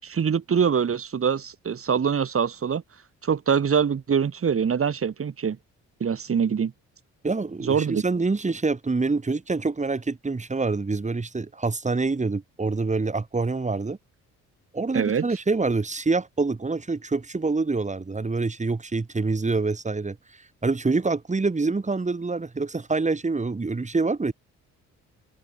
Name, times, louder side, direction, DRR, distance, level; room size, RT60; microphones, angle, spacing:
voice 1, 0.0-2.8 3.2-5.6 6.0-6.7 7.7-8.0 14.9-15.2, right 7 dB, 45° right, 7.0 m, -24 dB
voice 2, 7.2-14.0 14.7-24.3, right 3 dB, 25° right, 7.5 m, -26 dB
cardioid pair, 90°, 30 cm